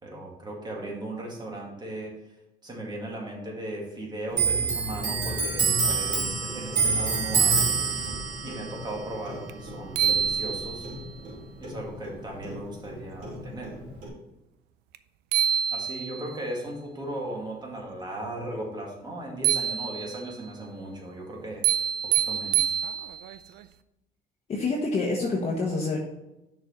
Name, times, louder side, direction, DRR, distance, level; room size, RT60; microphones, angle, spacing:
voice 1, 0.0-2.1 2.6-7.7 8.4-10.9 11.6-13.7 15.7-22.8, right 1 dB, 25° right, -1 dB, 2.1 m, -37 dB
Clock, 4.3-11.4 11.6-13.0 13.2-14.1, right 4 dB, 55° right, 2.7 m, -27 dB
sound 1, 9.5-9.6 10.0-11.0 14.9-15.0 15.3-16.4 19.4-20.3 21.6-23.4, right 10 dB, 85° right, 0.4 m, -26 dB
voice 2, 24.5-26.0, left 3 dB, 40° left, -2 dB, 1.3 m, -27 dB
6.3 x 4.8 x 5.8 m, 0.91 s
cardioid pair, 110°, 17 cm